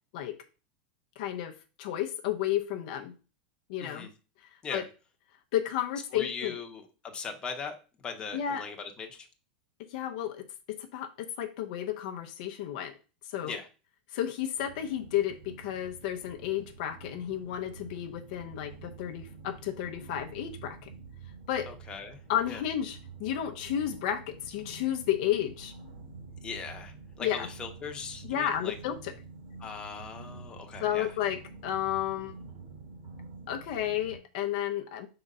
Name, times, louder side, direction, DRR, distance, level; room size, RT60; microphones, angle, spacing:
voice 1, 1.2-1.5 1.8-3.1 3.7-4.1 4.7-4.8 5.5-6.6 8.3-8.6 9.9-12.9 13.3-13.6 14.1-20.9 21.5-21.7 22.3-25.7 27.2-27.5 28.2-29.1 30.8-32.4 33.5-35.1, left 11 dB, 60° left, 5 dB, 0.8 m, -32 dB
voice 2, 6.1-9.3 13.4-13.7 21.7-22.2 22.5-22.6 26.4-28.7 29.6-31.1, left 5 dB, 20° left, 3 dB, 1.0 m, -39 dB
sound 1, 14.5-34.2, right 4 dB, 50° right, 2.1 m, -48 dB
4.5 x 3.9 x 5.4 m, 0.34 s
supercardioid pair, 140°, 5 cm